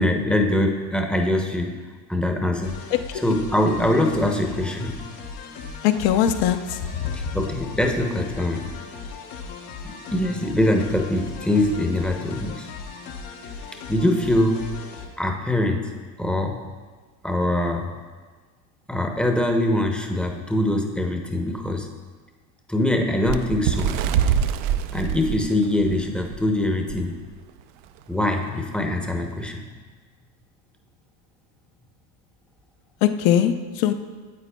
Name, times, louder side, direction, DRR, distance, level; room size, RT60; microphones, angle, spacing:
voice 1, 0.0-1.8 2.1-2.8 3.1-5.0 7.1-8.6 9.8-12.7 13.9-14.7 15.2-15.9 16.2-16.6 17.2-17.9 18.9-21.9 22.7-23.9 24.9-27.2 28.1-29.6, left 1 dB, ahead, 3 dB, 0.7 m, -23 dB
sound 1, 2.6-15.1, left 5 dB, 80° left, 1.2 m, -38 dB
voice 2, 2.9-3.2 5.8-7.3 33.0-33.9, left 10 dB, 60° left, 9 dB, 0.7 m, -21 dB
Bird, 23.2-26.4 26.9-27.1 27.3-27.6 28.4-28.5, right 8 dB, 70° right, 0.6 m, -24 dB
9.5 x 8.1 x 2.2 m, 1.4 s
supercardioid pair, 90°, 50 cm